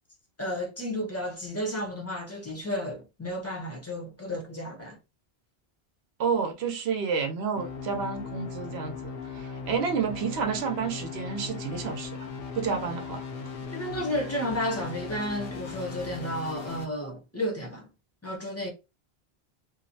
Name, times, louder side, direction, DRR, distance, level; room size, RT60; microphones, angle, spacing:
voice 1, 0.4-5.0 13.7-17.9 18.2-18.7, equal, 15° left, 0.6 m, -32 dB
voice 2, 6.2-12.1 12.5-13.3, right 6 dB, 80° right, 0.9 m, -30 dB
sound 1, 7.5-16.9, left 5 dB, 70° left, 0.8 m, -38 dB
2.7 x 2.0 x 2.6 m
omnidirectional pair, 1.1 m